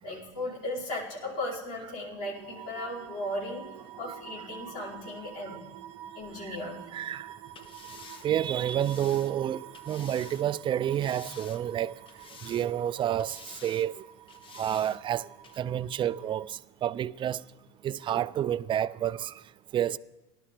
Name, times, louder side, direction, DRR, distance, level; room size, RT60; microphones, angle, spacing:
voice 1, 0.0-3.6 4.0-5.6 6.1-6.8 7.6-7.7, left 1 dB, 70° left, 5.1 m, -36 dB
sound 1, 2.3-16.5, right 11 dB, 85° right, 0.8 m, -48 dB
voice 2, 6.9-7.3 8.2-11.9 12.4-13.9 14.5-15.3 15.6-17.4 17.8-19.3 19.7-20.0, right 10 dB, 35° right, 0.4 m, -29 dB
sound 2, 7.5-10.5 10.9-11.8 12.1-12.9 13.2-13.9 14.3-15.0 15.4-15.6, left 6 dB, 35° left, 1.0 m, -50 dB
18.5 x 11.5 x 3.3 m
supercardioid pair, 105°, 15 cm